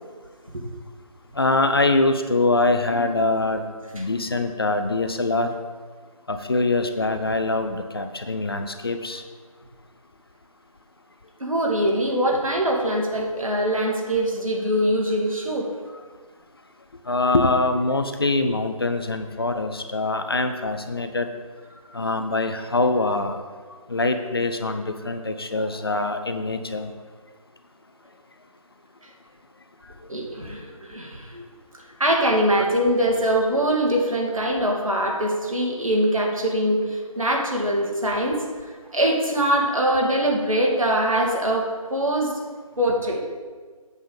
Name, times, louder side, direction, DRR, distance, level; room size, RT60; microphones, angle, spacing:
voice 1, 1.4-3.6 3.9-5.5 6.3-9.2 17.1-21.3 21.9-23.4 23.9-26.9, left 2 dB, 40° left, 7 dB, 0.6 m, -23 dB
voice 2, 11.4-15.7 30.1-31.5 32.0-38.4 38.6-42.3 42.8-43.2, right 1 dB, 70° right, -1 dB, 2.2 m, -23 dB
8.2 x 7.1 x 5.2 m, 1.5 s
figure-of-eight pair, 160°, 18 cm